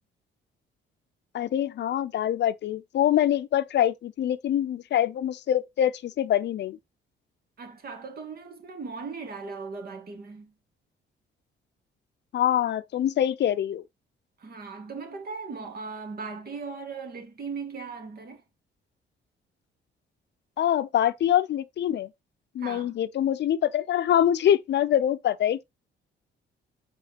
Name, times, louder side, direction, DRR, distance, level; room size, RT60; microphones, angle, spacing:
voice 1, 1.3-6.8 12.3-13.8 20.6-22.1 22.5-25.6, left 10 dB, 60° left, 0.6 m, -24 dB
voice 2, 7.6-10.5 14.4-18.4 22.6-23.0, right 4 dB, 50° right, 2.2 m, -38 dB
7.4 x 4.9 x 3.0 m
cardioid pair, 90°, 20 cm